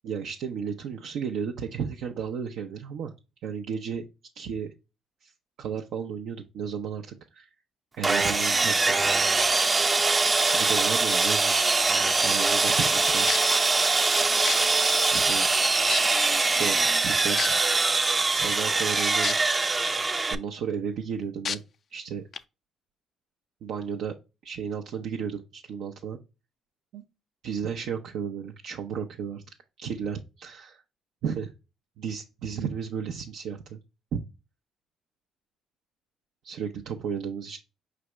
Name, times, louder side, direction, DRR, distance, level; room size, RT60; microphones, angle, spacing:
voice 1, 0.0-3.1 3.4-4.0 4.3-4.7 5.2-5.3 5.6-7.5 8.0-9.0 10.5-11.6 12.2-13.3 15.1-15.5 16.4-17.5 18.3-19.4 20.3-21.6 21.9-22.2 23.6-24.1 24.4-26.2 26.9-27.0 27.4-29.4 29.8-30.8 31.2-31.5 32.0-33.8 34.1-34.2 36.4-37.6, right 7 dB, 75° right, 2 dB, 0.6 m, -33 dB
Sawing, 8.0-20.3, right 3 dB, 30° right, 0.5 m, -23 dB
sound 1, 13.3-13.5 14.5-14.6 15.3-15.4 15.9-16.3 17.4-17.5 19.2-19.3 19.9-20.0 21.5-21.6 22.3-22.4, left 6 dB, 55° left, 0.3 m, -29 dB
5.0 x 3.4 x 3.0 m, 0.28 s
supercardioid pair, 65°, 0 cm